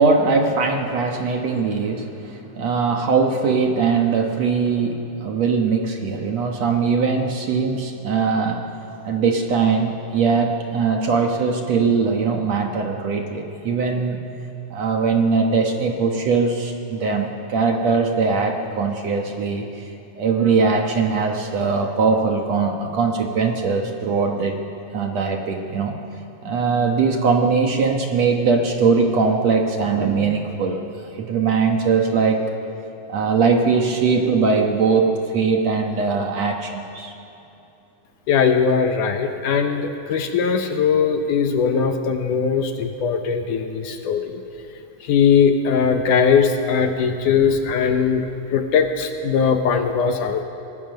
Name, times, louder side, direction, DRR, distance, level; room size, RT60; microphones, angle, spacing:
voice 1, 0.0-8.6 9.1-14.2 14.7-19.9 20.2-24.6 24.9-26.0 26.4-30.8 31.1-32.5 33.1-37.1, right 4 dB, 60° right, 3 dB, 2.1 m, -21 dB
voice 2, 38.3-44.4 45.0-50.4, left 6 dB, 70° left, 6 dB, 2.4 m, -20 dB
24.0 x 18.5 x 6.5 m, 2.8 s
omnidirectional pair, 4.1 m